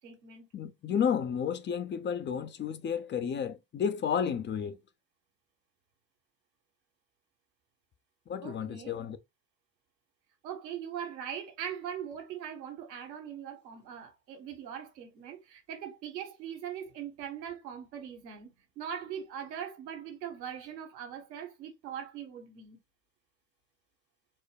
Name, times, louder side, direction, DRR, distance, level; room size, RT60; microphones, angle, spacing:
voice 1, 0.0-0.4 8.4-8.9 10.4-18.5 18.8-22.8, right 9 dB, 80° right, 1.2 m, -41 dB
voice 2, 0.5-4.8 8.3-9.2, left 7 dB, 25° left, 0.4 m, -32 dB
4.4 x 2.2 x 3.4 m
hypercardioid pair, 75°, 50 cm